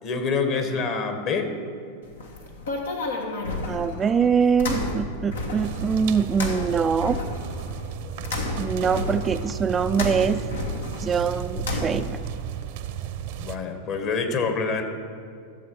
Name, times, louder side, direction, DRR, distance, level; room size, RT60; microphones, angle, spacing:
voice 1, 0.0-1.5 13.4-14.8, left 4 dB, 45° left, 6 dB, 1.7 m, -26 dB
sound 1, 2.1-12.3, left 2 dB, 80° left, 1.4 m, -32 dB
voice 2, 3.7-7.2 8.6-10.4 11.0-12.2, right 6 dB, 25° right, 10 dB, 0.3 m, -23 dB
sound 2, 5.6-13.6, right 9 dB, 60° right, 0.7 m, -34 dB
15.0 x 7.1 x 4.8 m, 2.4 s
hypercardioid pair, 95°, 0 cm